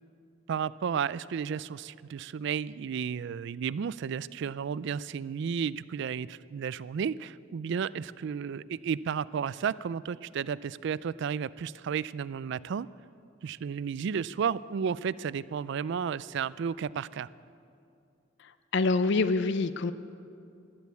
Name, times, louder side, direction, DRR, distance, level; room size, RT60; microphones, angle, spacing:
voice 1, 0.5-12.9 13.4-17.3, right 7 dB, 60° right, 19 dB, 0.3 m, -33 dB
voice 2, 18.4-19.9, left 3 dB, 60° left, 13 dB, 0.5 m, -26 dB
13.0 x 12.5 x 8.2 m, 2.5 s
head